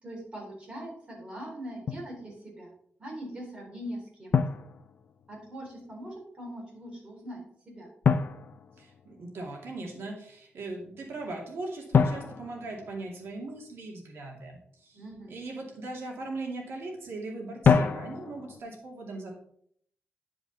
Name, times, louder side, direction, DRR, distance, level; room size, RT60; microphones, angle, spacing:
voice 1, 0.0-2.7 3.0-4.3 5.3-7.4 7.7-7.9 9.9-10.0 14.9-15.3 16.5-16.9, equal, 25° right, -3 dB, 4.0 m, -41 dB
Drum, 1.9-2.2 4.3-5.5 8.0-9.5 11.9-13.6 17.6-18.6, left 6 dB, 55° left, 0.5 m, -27 dB
voice 2, 8.8-19.3, right 2 dB, 75° right, 0 dB, 2.5 m, -39 dB
10.0 x 5.0 x 4.2 m, 0.65 s
wide cardioid pair, 115°, 4 cm